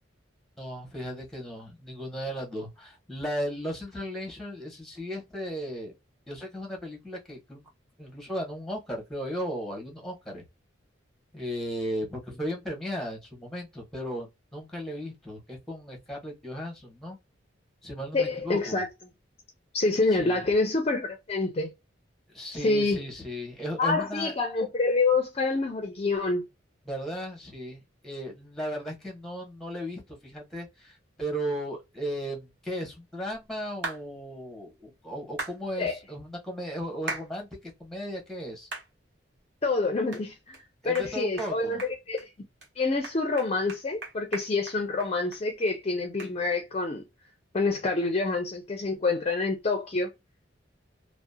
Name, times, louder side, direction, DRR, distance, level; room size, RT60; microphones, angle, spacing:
voice 1, 0.6-5.9 6.3-7.6 8.0-10.4 11.3-17.2 17.8-18.8 20.1-20.4 22.3-24.3 26.8-38.7 40.8-41.8, equal, ahead, 0.9 m, -36 dB
voice 2, 18.1-18.9 19.7-21.7 22.5-23.0 23.8-26.4 35.8-35.9 39.6-40.6 40.8-42.3 42.8-47.0 47.5-50.1, left 3 dB, 35° left, 0.4 m, -27 dB
sound 1, 33.8-34.0 35.4-35.6 37.1-37.3 37.8-37.9 38.7-38.9 39.4-39.5 40.1-40.2 40.5-40.6 40.9-41.1 41.4-41.5 41.8-42.3 42.6-42.7 43.0-45.4 45.7-45.8 46.2-46.3, right 3 dB, 65° right, 1.0 m, -37 dB
2.7 x 2.0 x 2.2 m
head